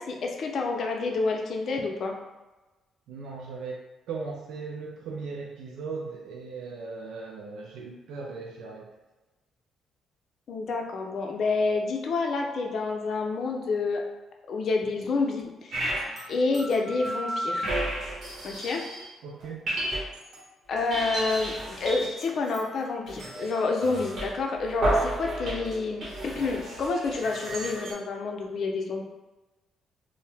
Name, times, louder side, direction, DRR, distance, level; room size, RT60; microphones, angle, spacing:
voice 1, 0.0-2.2 10.5-14.0 14.5-16.0 16.3-17.7 18.4-18.8 20.7-29.0, left 3 dB, 60° left, 2 dB, 0.5 m, -28 dB
voice 2, 3.1-3.8 4.1-8.9 19.2-19.7, right 4 dB, 80° right, -2 dB, 0.4 m, -38 dB
sound 1, 15.7-16.3 16.5-19.1 19.4-20.4 20.8-27.9, right 1 dB, 60° right, 0.9 m, -32 dB
2.7 x 2.0 x 3.3 m, 1.1 s
cardioid pair, 90°, 0 cm